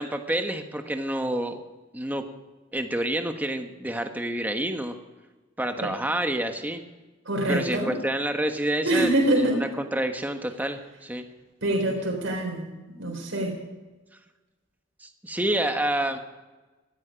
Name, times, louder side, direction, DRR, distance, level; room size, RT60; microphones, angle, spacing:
voice 1, 0.0-1.6 1.9-2.2 2.7-5.0 5.6-6.8 7.5-11.2 15.0-16.2, right 1 dB, 10° right, 6 dB, 1.3 m, -28 dB
voice 2, 7.3-7.9 8.8-9.6 11.6-13.5, right 1 dB, 70° right, 0 dB, 3.9 m, -25 dB
17.0 x 13.5 x 5.2 m, 1.2 s
head